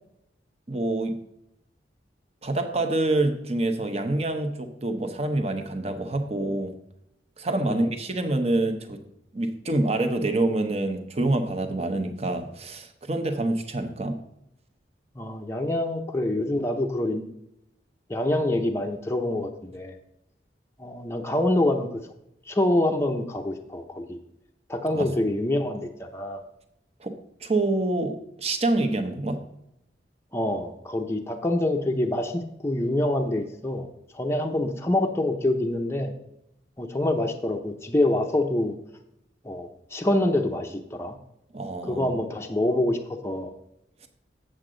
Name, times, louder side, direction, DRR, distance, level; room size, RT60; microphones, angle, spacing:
voice 1, 0.7-1.2 2.4-6.7 7.4-9.0 9.3-14.2 24.9-25.1 27.0-27.1 27.4-29.4 41.5-42.2, right 2 dB, 35° right, 6 dB, 0.9 m, -26 dB
voice 2, 15.2-17.2 18.1-19.9 20.8-22.0 22.5-24.2 24.7-26.4 30.3-33.9 34.1-36.1 36.8-38.7 39.4-41.2 41.8-43.0 43.2-43.5, left 1 dB, 15° left, 3 dB, 0.6 m, -26 dB
8.0 x 7.6 x 3.8 m, 0.81 s
head